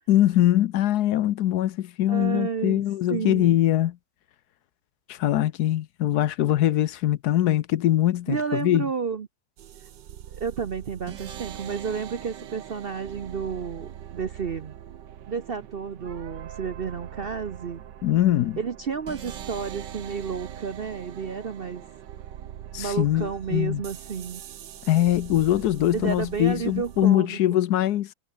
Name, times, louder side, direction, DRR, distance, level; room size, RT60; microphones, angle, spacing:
voice 1, 0.1-4.0 5.1-8.9 18.0-18.6 22.7-23.8 24.9-28.1, left 13 dB, 70° left, 1.2 m, -22 dB
voice 2, 2.1-2.8 3.1-3.6 8.3-9.3 10.3-14.7 15.3-17.8 18.6-21.8 22.8-24.4 25.9-27.4, right 6 dB, 45° right, 0.8 m, -31 dB
sound 1, 9.6-27.1, right 10 dB, 90° right, 1.7 m, -42 dB
omnidirectional pair, 1.8 m